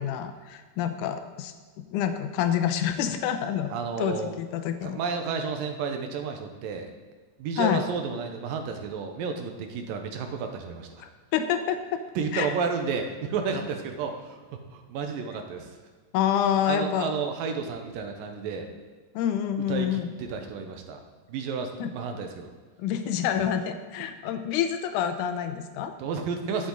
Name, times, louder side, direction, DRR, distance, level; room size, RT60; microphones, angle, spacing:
voice 1, 0.0-1.5 1.9-3.7 4.0-5.0 7.6-7.8 11.0-12.0 12.3-12.5 16.1-17.1 19.1-20.1 21.8-21.9 22.8-25.9, left 9 dB, 80° left, 8 dB, 2.0 m, -27 dB
voice 2, 3.7-4.3 4.8-6.9 7.4-11.0 12.2-14.4 14.7-15.7 16.7-18.7 19.7-21.0 21.3-22.5 26.0-26.7, right 5 dB, 85° right, 5 dB, 2.7 m, -31 dB
11.0 x 8.5 x 3.9 m, 1.5 s
omnidirectional pair, 3.9 m